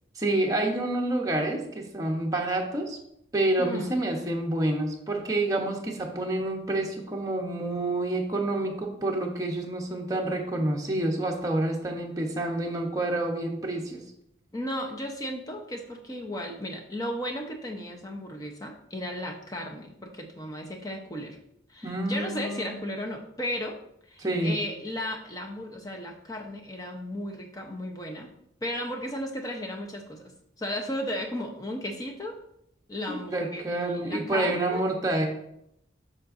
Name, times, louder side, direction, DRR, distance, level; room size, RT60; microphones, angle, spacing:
voice 1, 0.2-3.0 3.3-14.0 21.8-22.8 24.2-24.6 33.1-35.3, right 1 dB, 20° right, 0 dB, 0.9 m, -28 dB
voice 2, 3.6-4.0 14.5-21.4 21.7-23.8 24.1-28.3 28.6-30.3 30.6-32.4 32.9-34.8, left 1 dB, 20° left, 2 dB, 0.8 m, -35 dB
7.5 x 5.8 x 2.6 m, 0.76 s
head